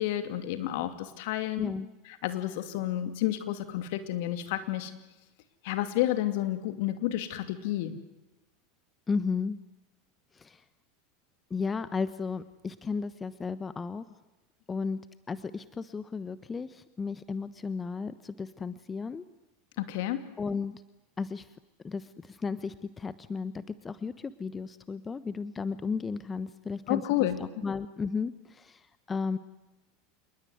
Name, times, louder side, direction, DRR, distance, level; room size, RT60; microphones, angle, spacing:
voice 1, 0.0-1.7 2.1-4.9 5.6-7.9 19.8-20.2 26.9-27.6, left 13 dB, 65° left, 10 dB, 2.7 m, -30 dB
voice 2, 9.1-9.6 10.3-10.6 11.5-14.1 14.7-15.0 15.3-19.2 20.4-20.8 21.2-21.5 21.8-27.0 27.4-29.4, left 5 dB, 20° left, 14 dB, 1.2 m, -34 dB
28.0 x 20.5 x 9.5 m, 1.0 s
hypercardioid pair, 85°, 0 cm